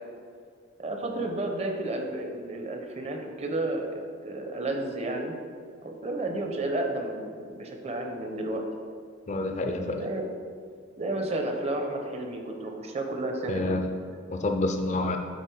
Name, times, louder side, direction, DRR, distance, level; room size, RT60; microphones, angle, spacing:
voice 1, 0.8-3.9 4.2-5.4 5.8-8.6 9.9-10.3 11.0-13.7, right 2 dB, 35° right, 3 dB, 0.7 m, -32 dB
voice 2, 9.3-10.0 13.5-13.8 14.3-15.2, left 2 dB, 35° left, 5 dB, 0.4 m, -28 dB
8.0 x 4.1 x 4.6 m, 2.2 s
head